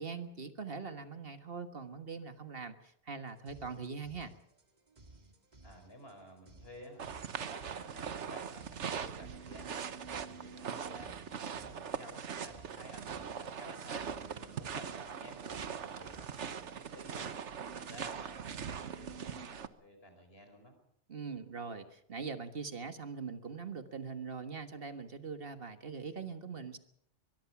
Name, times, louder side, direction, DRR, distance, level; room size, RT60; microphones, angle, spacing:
voice 1, 0.0-4.3 21.1-26.8, right 5 dB, 55° right, 9 dB, 1.6 m, -42 dB
sound 1, 3.3-16.7, right 2 dB, 40° right, 2.0 m, -59 dB
voice 2, 5.6-9.8 10.2-17.4 17.8-20.8, equal, 60° left, 6 dB, 5.2 m, -53 dB
sound 2, 7.0-19.7, right 7 dB, 90° right, 1.4 m, -41 dB
23.0 x 22.0 x 5.9 m, 0.72 s
omnidirectional pair, 1.2 m